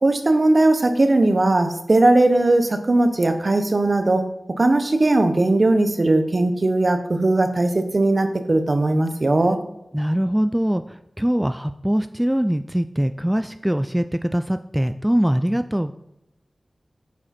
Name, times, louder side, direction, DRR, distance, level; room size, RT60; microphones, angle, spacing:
voice 1, 0.0-4.3 4.6-9.6, right 2 dB, 50° right, 8 dB, 1.0 m, -18 dB
voice 2, 9.9-15.9, equal, 10° right, 10 dB, 0.3 m, -22 dB
9.4 x 4.9 x 4.3 m, 0.88 s
wide cardioid pair, 55°, 0 cm